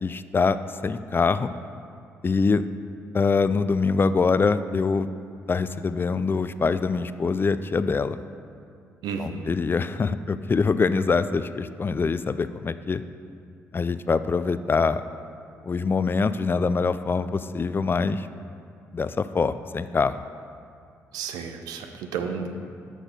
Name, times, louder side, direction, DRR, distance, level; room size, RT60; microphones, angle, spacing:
voice 1, 0.0-0.6 0.8-1.5 2.2-2.7 3.1-5.1 5.5-8.2 9.2-13.0 13.7-15.0 15.7-18.3 18.9-20.2, left 4 dB, 35° left, 13 dB, 0.3 m, -24 dB
voice 2, 9.0-9.6 21.1-22.5, right 6 dB, 80° right, 6 dB, 0.6 m, -32 dB
6.3 x 6.2 x 5.1 m, 2.3 s
hypercardioid pair, 50°, 7 cm